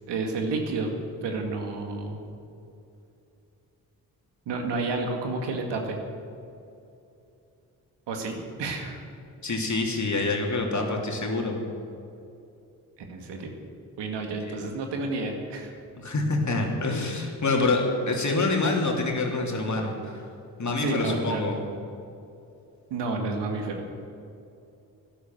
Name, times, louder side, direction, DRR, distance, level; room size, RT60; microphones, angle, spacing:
voice 1, 0.1-0.9 1.2-2.2 4.5-6.0 8.1-9.0 13.1-13.5 14.0-15.7 20.7-21.4 22.9-23.8, right 3 dB, 70° right, 3 dB, 2.1 m, -30 dB
voice 2, 9.4-11.6 14.5-14.6 16.0-20.2 20.6-21.6, left 3 dB, 40° left, 1 dB, 3.2 m, -26 dB
12.0 x 11.5 x 7.7 m, 2.7 s
hypercardioid pair, 45°, 43 cm